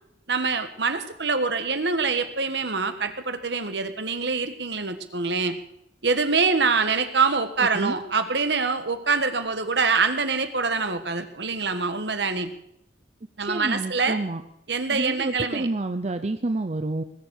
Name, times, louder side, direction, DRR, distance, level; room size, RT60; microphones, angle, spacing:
voice 1, 0.3-5.6 6.0-12.5 13.4-14.2 14.7-15.7, right 4 dB, 70° right, 9 dB, 1.6 m, -25 dB
voice 2, 13.4-14.4 14.9-17.0, right 2 dB, 40° right, 9 dB, 0.7 m, -28 dB
20.5 x 7.4 x 8.3 m, 0.78 s
head